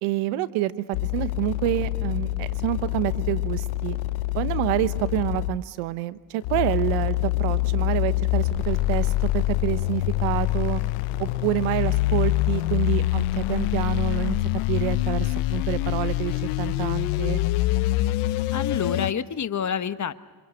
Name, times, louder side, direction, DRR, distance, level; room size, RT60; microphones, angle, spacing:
voice 1, 0.0-4.0 4.4-10.8 11.2-14.4 14.7-17.4, right 15 dB, 85° right, 14 dB, 1.1 m, -28 dB
sound 1, 0.9-5.6 6.4-19.1, left 16 dB, 85° left, 0.9 m, -25 dB
voice 2, 18.5-20.1, left 7 dB, 35° left, 11 dB, 1.3 m, -28 dB
28.0 x 24.5 x 6.5 m, 1.3 s
supercardioid pair, 65°, 49 cm